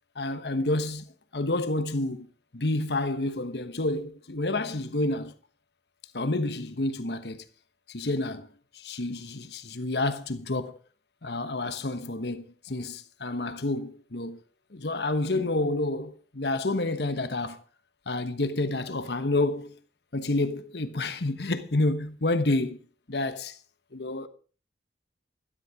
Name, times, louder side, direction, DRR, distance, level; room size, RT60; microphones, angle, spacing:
voice 1, 0.1-2.3 2.5-5.3 6.1-7.4 7.9-8.5 8.7-10.8 11.2-14.4 14.7-17.6 18.1-19.8 20.1-22.8 23.1-23.6 23.9-24.3, left 2 dB, 65° left, 1.2 m, -29 dB
13.0 x 12.5 x 4.9 m
head